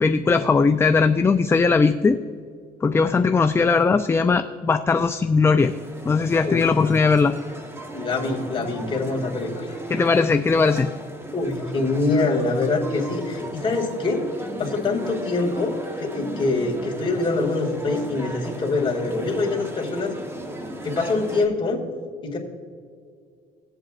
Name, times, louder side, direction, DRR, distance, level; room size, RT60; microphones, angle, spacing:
voice 1, 0.0-2.2 2.8-5.7 6.0-7.3 9.9-10.9, left 4 dB, 15° left, 8 dB, 0.3 m, -19 dB
sound 1, 5.6-21.5, right 1 dB, 15° right, 1.0 m, -36 dB
voice 2, 6.4-6.7 7.9-9.8 11.3-14.3 14.6-20.1 20.8-21.8 22.2-22.4, left 3 dB, 30° left, -2 dB, 2.1 m, -24 dB
18.5 x 7.8 x 2.4 m, 2.2 s
cardioid pair, 110°, 17 cm